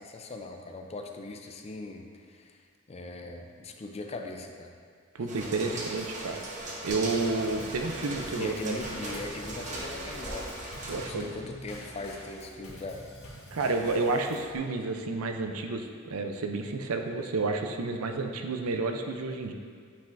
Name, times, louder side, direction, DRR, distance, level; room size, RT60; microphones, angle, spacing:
voice 1, 0.0-4.7 5.2-5.3 5.7-5.9 8.3-13.1, left 2 dB, 30° left, 4 dB, 0.4 m, -40 dB
voice 2, 5.1-6.4 6.8-8.7 10.9-11.3 13.5-19.5, right 3 dB, 90° right, 5 dB, 0.5 m, -30 dB
sound 1, 5.3-11.1, right 2 dB, 35° right, 0.9 m, -38 dB
Drum kit / Snare drum / Bass drum, 6.9-14.6, equal, 80° left, 1.6 m, -46 dB
8.5 x 5.6 x 2.6 m, 2.1 s
head